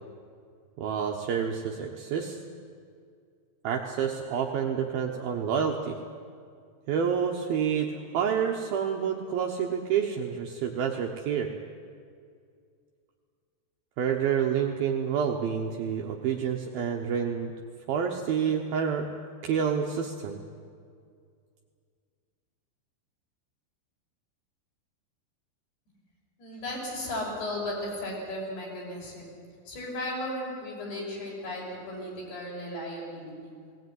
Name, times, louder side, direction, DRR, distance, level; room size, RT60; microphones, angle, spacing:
voice 1, 0.8-2.4 3.6-6.0 6.9-11.5 14.0-17.5 17.9-19.1 19.4-20.4, right 7 dB, 70° right, 1 dB, 2.4 m, -28 dB
voice 2, 26.4-29.3 29.7-33.5, left 1 dB, 60° left, -3 dB, 7.7 m, -35 dB
20.0 x 18.0 x 9.5 m, 2.2 s
omnidirectional pair, 5.3 m